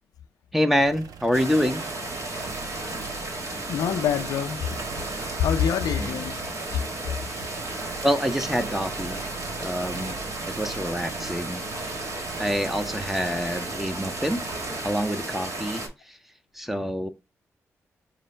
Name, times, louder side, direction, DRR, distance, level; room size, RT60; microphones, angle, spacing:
voice 1, 0.5-1.9 6.0-6.1 8.0-9.2 9.6-10.2 10.5-12.0 12.4-14.4 14.8-16.2 16.5-17.1, equal, 5° right, 0.6 m, -26 dB
sound 1, 0.8-15.8, right 5 dB, 75° right, 0.5 m, -42 dB
sound 2, 1.3-15.9, right 2 dB, 55° right, 1.3 m, -34 dB
voice 2, 3.7-4.6 5.4-6.4 13.5-13.6, left 8 dB, 80° left, 0.4 m, -25 dB
5.1 x 2.1 x 3.2 m
supercardioid pair, 40°, 6 cm